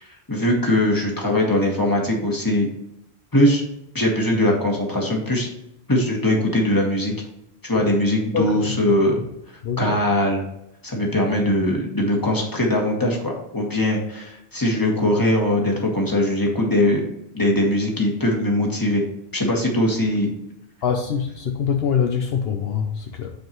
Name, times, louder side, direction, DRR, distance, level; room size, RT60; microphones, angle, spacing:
voice 1, 0.0-2.7 3.3-3.6 3.9-5.5 5.9-7.1 7.6-9.2 9.8-10.5 10.8-17.0 17.3-19.0 19.3-20.3, left 1 dB, 20° left, -1 dB, 1.6 m, -21 dB
voice 2, 8.3-9.0 9.6-10.0 20.8-23.3, left 7 dB, 65° left, 4 dB, 0.9 m, -24 dB
9.2 x 4.6 x 3.0 m, 0.84 s
omnidirectional pair, 1.1 m